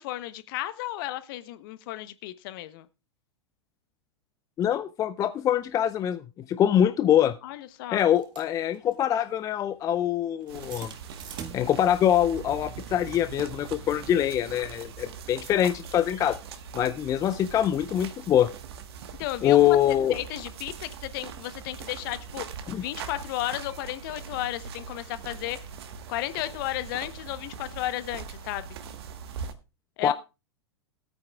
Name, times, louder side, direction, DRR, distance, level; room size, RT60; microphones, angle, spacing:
voice 1, 0.0-2.9 7.4-8.0 19.2-22.4 22.8-25.6 26.1-28.7 30.0-30.1, left 15 dB, 50° left, 14 dB, 0.9 m, -34 dB
voice 2, 4.6-7.4 7.9-10.9 11.5-16.4 16.7-18.5 19.4-20.2 22.7-22.8 30.0-30.1, left 10 dB, 25° left, 12 dB, 0.5 m, -24 dB
sound 1, 5.9-6.0 6.9-7.1 8.0-14.9, right 8 dB, 30° right, 1.7 m, -46 dB
sound 2, 10.5-29.5, right 6 dB, 60° right, 1.4 m, -42 dB
18.5 x 9.0 x 2.4 m, 0.28 s
figure-of-eight pair, 100°, 15 cm